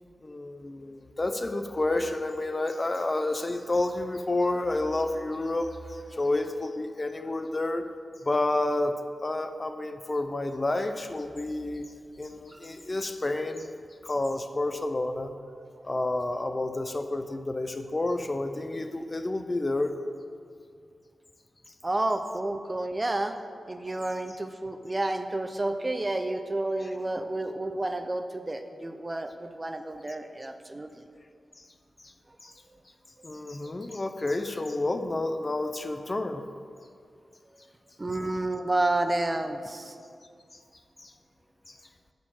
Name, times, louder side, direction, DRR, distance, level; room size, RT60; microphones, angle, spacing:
voice 1, 0.2-7.8 8.2-11.9 12.2-13.7 14.0-15.3 15.8-19.9 26.8-26.9 32.0-32.1 32.4-32.5 33.2-36.4 40.5-40.6 41.0-41.1 41.7-41.8, left 2 dB, 25° left, 8 dB, 0.5 m, -30 dB
voice 2, 21.8-23.3 23.7-30.9 38.0-40.0, right 2 dB, 20° right, 8 dB, 0.5 m, -30 dB
11.5 x 4.3 x 7.4 m, 2.2 s
wide cardioid pair, 100°, 0 cm